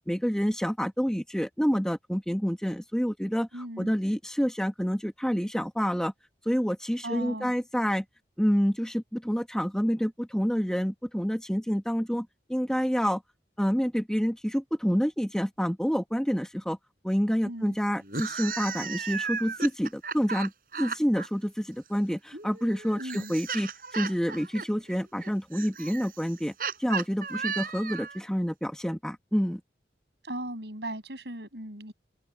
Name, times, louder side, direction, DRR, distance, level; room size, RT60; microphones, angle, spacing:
voice 1, 0.1-3.5 3.8-6.1 6.5-8.0 8.4-13.2 13.6-16.8 17.0-20.5 20.8-26.5 26.8-29.6, equal, 5° left, 1.7 m, -28 dB
voice 2, 3.5-3.9 7.0-7.5 17.5-17.8 23.0-23.3 30.2-31.9, right 1 dB, 70° right, 7.2 m, -37 dB
sound 1, 18.0-21.3 22.3-28.2, right 5 dB, 50° right, 7.6 m, -35 dB
open air
head